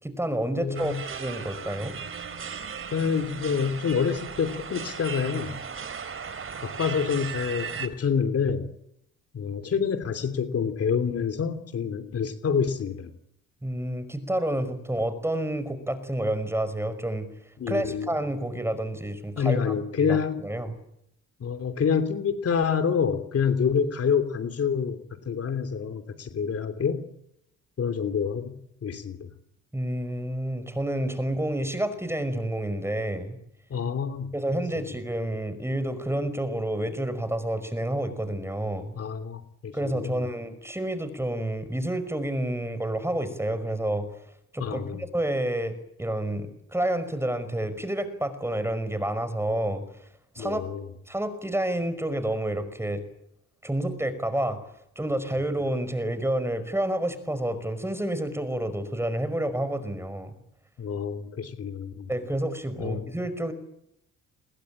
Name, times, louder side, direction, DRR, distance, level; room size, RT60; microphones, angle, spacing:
voice 1, 0.0-2.0 13.6-17.3 17.7-19.6 20.1-20.7 29.7-33.4 34.3-39.0 39.7-44.1 44.5-49.8 50.4-50.6 51.1-53.0 53.6-54.6 55.0-60.3 62.1-63.5, right 1 dB, 10° right, 12 dB, 5.3 m, -29 dB
voice 2, 0.6-1.0 2.9-5.6 6.6-8.7 9.3-13.1 17.6-18.1 19.4-20.4 21.4-27.0 27.8-29.3 33.7-34.3 34.7-34.9 39.0-40.2 44.6-45.0 50.4-50.8 60.8-62.1 62.8-63.1, left 6 dB, 50° left, 9 dB, 3.0 m, -27 dB
sound 1, 0.7-7.9, right 6 dB, 45° right, 3.4 m, -37 dB
30.0 x 22.0 x 8.9 m, 0.77 s
cardioid pair, 90°, 30 cm